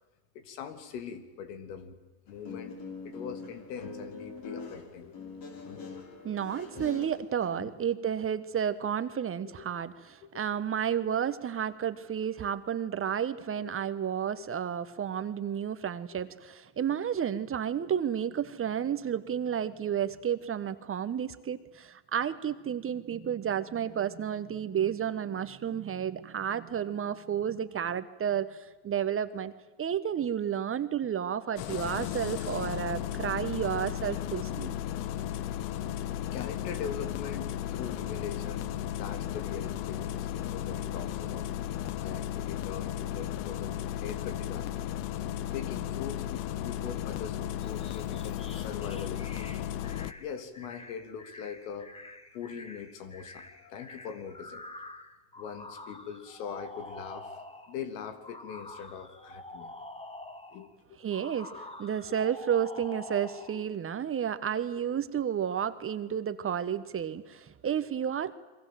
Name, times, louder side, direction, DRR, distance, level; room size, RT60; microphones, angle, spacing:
voice 1, 0.3-2.0 2.3-2.8 3.0-5.2 5.6-6.0 7.6-7.7 9.6-9.7 10.2-10.7 13.6-14.0 15.2-15.6 16.2-16.3 33.6-33.8 34.6-34.9 35.9-38.7 39.0-41.5 42.0-44.9 45.5-49.5 50.2-54.6 55.4-57.4 57.7-59.7 60.5-60.7 62.1-62.2 63.5-63.6 64.9-65.0 67.7-67.8, left 7 dB, 80° left, 9 dB, 3.3 m, -42 dB
Guitar, 2.3-7.6, left 4 dB, 45° left, 6.1 m, -43 dB
voice 2, 6.2-29.5 29.8-34.7 61.0-68.3, right 8 dB, 25° right, 12 dB, 1.4 m, -31 dB
Engine starting, 31.6-50.1, left 11 dB, 60° left, 1.4 m, -35 dB
sound 1, 47.6-57.8 58.2-60.7 61.1-63.6, left 2 dB, 10° left, 2.1 m, -47 dB
29.0 x 23.0 x 7.8 m, 1.2 s
supercardioid pair, 115°, 48 cm